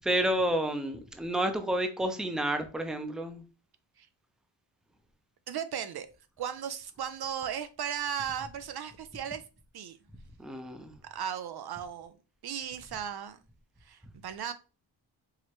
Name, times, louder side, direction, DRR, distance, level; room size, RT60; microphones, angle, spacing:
voice 1, 0.0-3.4 10.4-10.9, right 1 dB, ahead, 0.6 m, -30 dB
voice 2, 5.5-6.1 6.4-9.4 9.7-10.0 11.1-12.1 12.4-13.4 13.8-14.5, right 8 dB, 55° right, 0.5 m, -36 dB
4.6 x 3.1 x 3.0 m
cardioid pair, 90°, 46 cm